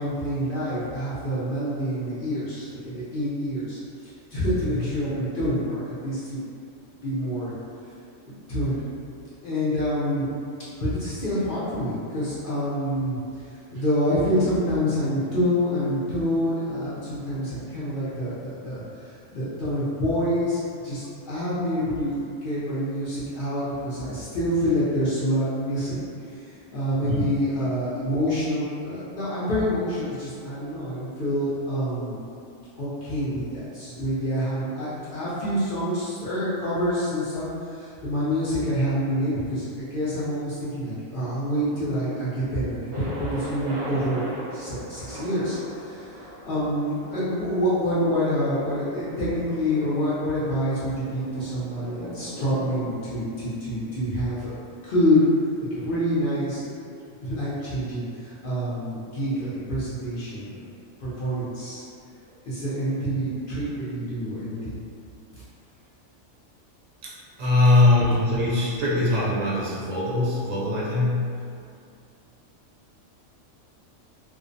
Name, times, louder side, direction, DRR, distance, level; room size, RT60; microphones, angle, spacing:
voice 1, 0.0-6.4 7.0-7.5 8.2-8.8 9.4-10.3 10.8-13.4 13.7-26.0 26.7-32.2 32.8-44.2 44.5-54.6 54.8-55.2 55.7-56.8 57.2-60.5 61.0-61.8 62.4-64.8 65.3-65.4, equal, 55° left, -11 dB, 0.6 m, -27 dB
voice 2, 27.0-27.4 67.0-67.1 67.4-71.6, left 2 dB, 75° right, -7 dB, 1.1 m, -22 dB
Thunder, 42.9-54.7, right 1 dB, 55° right, 0.3 m, -39 dB
2.5 x 2.0 x 2.5 m, 2.4 s
omnidirectional pair, 1.4 m